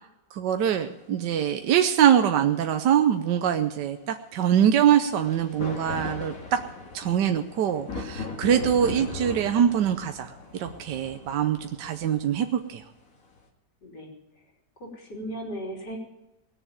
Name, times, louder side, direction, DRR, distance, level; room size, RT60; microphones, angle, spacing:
voice 1, 0.3-6.6 6.9-12.8, right 9 dB, 75° right, 7 dB, 1.4 m, -23 dB
sound 1, 1.1-1.2 5.0-13.4, left 3 dB, 50° left, 2.4 m, -39 dB
voice 2, 13.8-14.1 14.8-16.0, equal, 70° left, -1 dB, 4.1 m, -36 dB
19.5 x 7.1 x 8.9 m, 0.96 s
omnidirectional pair, 1.9 m